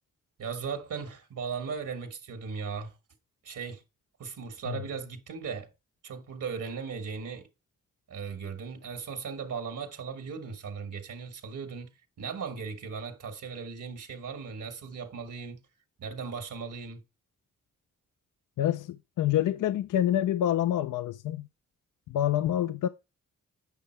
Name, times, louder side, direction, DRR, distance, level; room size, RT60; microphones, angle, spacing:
voice 1, 0.4-2.9 3.4-3.8 4.2-5.7 6.0-7.5 8.1-11.9 12.2-15.6 16.0-17.0, right 5 dB, 75° right, 1.4 m, -37 dB
voice 2, 18.6-21.5 22.1-22.9, left 11 dB, 80° left, 0.5 m, -27 dB
8.3 x 5.6 x 4.3 m
cardioid pair, 55°, 31 cm